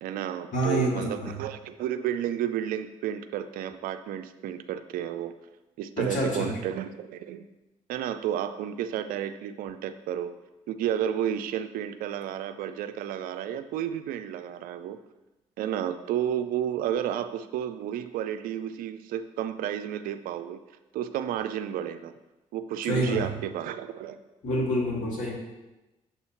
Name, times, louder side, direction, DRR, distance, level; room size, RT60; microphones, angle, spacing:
voice 1, 0.0-5.3 5.8-7.4 7.9-10.3 10.7-15.0 15.6-20.6 20.9-22.1 22.5-24.2, right 10 dB, 70° right, 10 dB, 0.4 m, -32 dB
voice 2, 0.5-1.4 6.0-6.5 22.9-23.2 24.4-25.3, equal, 60° left, -3 dB, 2.3 m, -27 dB
7.0 x 2.8 x 5.6 m, 1.0 s
hypercardioid pair, 50°, 15 cm